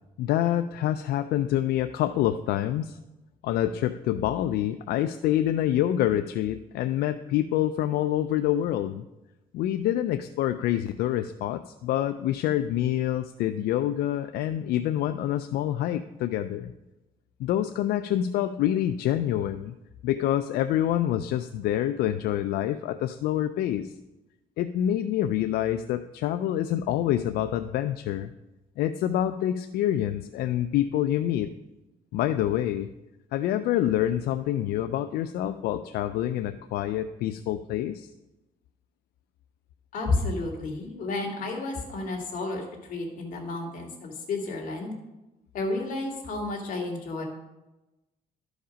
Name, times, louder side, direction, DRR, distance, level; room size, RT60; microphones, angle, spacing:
voice 1, 0.2-3.0 3.4-9.0 9.5-16.7 17.4-19.7 20.0-23.9 24.6-28.3 28.8-31.5 32.1-32.9 33.3-38.1, left 12 dB, 80° left, 9 dB, 0.4 m, -26 dB
voice 2, 39.9-44.9 45.5-47.2, left 2 dB, 60° left, 0 dB, 2.1 m, -31 dB
12.5 x 5.0 x 5.1 m, 1.0 s
cardioid pair, 130°, 16 cm